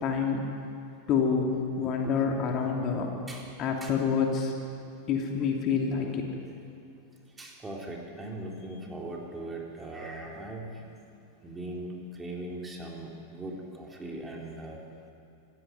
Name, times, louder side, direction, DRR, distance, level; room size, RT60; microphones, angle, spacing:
voice 1, 0.0-0.4 1.1-3.1 3.6-4.5 5.1-6.3, left 6 dB, 35° left, 1 dB, 2.9 m, -27 dB
voice 2, 7.4-10.7 11.4-14.8, right 1 dB, 15° right, -1 dB, 3.8 m, -39 dB
26.5 x 15.0 x 9.3 m, 2.6 s
figure-of-eight pair, 90°, 0 cm